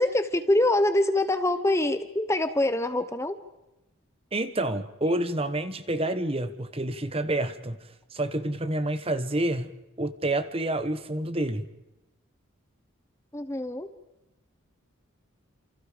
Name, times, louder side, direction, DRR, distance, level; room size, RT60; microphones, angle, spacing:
voice 1, 0.0-3.4 13.3-13.9, left 1 dB, 15° left, 11 dB, 0.9 m, -24 dB
voice 2, 4.3-7.8 8.1-9.7 10.0-11.7, right 1 dB, 25° right, 11 dB, 1.1 m, -28 dB
30.0 x 28.0 x 5.1 m, 0.97 s
head